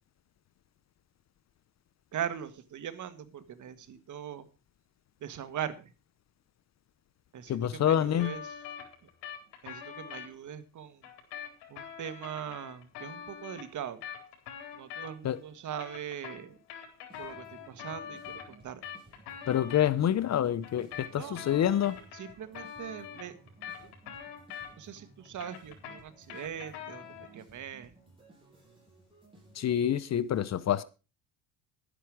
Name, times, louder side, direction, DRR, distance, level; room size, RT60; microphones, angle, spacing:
voice 1, 2.1-4.5 5.2-5.9 7.3-8.6 9.0-9.1 9.6-11.1 11.7-14.0 14.7-16.6 17.2-18.8 21.2-21.8 22.1-23.4 24.8-27.9, right 9 dB, 45° right, 1.7 m, -41 dB
voice 2, 7.5-8.3 15.2-15.4 19.5-22.0 29.5-30.8, left 10 dB, 40° left, 0.8 m, -27 dB
sound 1, 8.2-10.3 11.0-15.4 15.7-19.9 20.6-25.0 25.3-27.4, left 8 dB, 80° left, 4.3 m, -44 dB
sound 2, 17.1-30.0, right 2 dB, 15° right, 7.7 m, -57 dB
11.5 x 10.0 x 4.8 m
cardioid pair, 115°, 40 cm